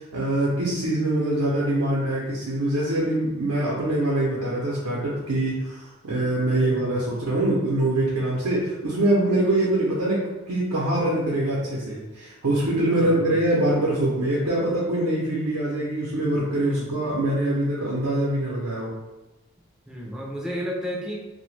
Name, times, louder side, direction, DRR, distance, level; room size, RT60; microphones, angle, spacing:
voice 1, 0.0-18.9, right 1 dB, 85° right, -5 dB, 0.6 m, -24 dB
voice 2, 6.6-7.0 12.9-13.4 16.6-16.9 19.9-21.2, equal, 5° right, -3 dB, 0.3 m, -32 dB
2.7 x 2.1 x 3.2 m, 1.1 s
head